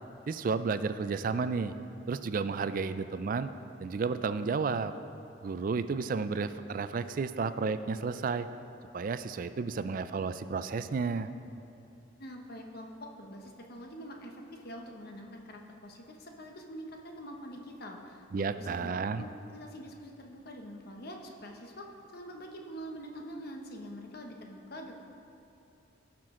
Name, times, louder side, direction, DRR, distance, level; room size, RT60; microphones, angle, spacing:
voice 1, 0.3-1.7 2.1-3.5 3.8-4.9 5.4-8.5 8.9-11.3 18.3-19.2, right 4 dB, 45° right, 12 dB, 0.3 m, -32 dB
voice 2, 12.2-18.9 19.2-21.9 22.1-24.9, equal, 50° left, 2 dB, 1.0 m, -45 dB
16.5 x 6.1 x 3.7 m, 2.7 s
head